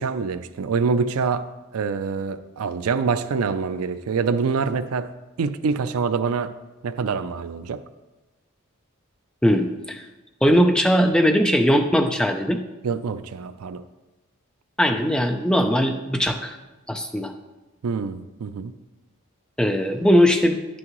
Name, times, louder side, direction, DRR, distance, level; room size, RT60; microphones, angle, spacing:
voice 1, 0.0-5.1 5.4-6.5 6.8-7.8 12.8-13.8 17.8-18.7, right 5 dB, 85° right, 12 dB, 0.4 m, -25 dB
voice 2, 9.4-10.0 10.4-12.6 14.8-16.6 16.9-17.3 19.6-20.6, equal, 5° left, 5 dB, 0.4 m, -19 dB
9.8 x 6.2 x 3.0 m, 1.1 s
head